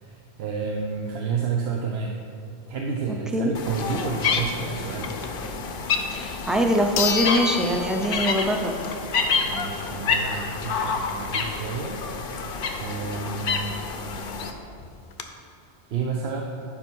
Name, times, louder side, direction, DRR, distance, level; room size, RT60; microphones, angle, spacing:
voice 1, 0.0-2.1 2.7-5.1 9.5-12.0 12.8-13.8 15.9-16.4, right 5 dB, 75° right, 0 dB, 0.9 m, -30 dB
voice 2, 3.1-3.5 6.1-8.7, equal, ahead, 3 dB, 0.3 m, -23 dB
sound 1, 3.6-14.5, left 4 dB, 60° left, 0.8 m, -28 dB
sound 2, 6.1-6.2 7.0-8.7 9.1-9.2 13.8-13.9 14.1-14.2 14.8-15.2, left 7 dB, 85° left, 1.0 m, -29 dB
9.7 x 5.6 x 4.5 m, 2.5 s
omnidirectional pair, 1.1 m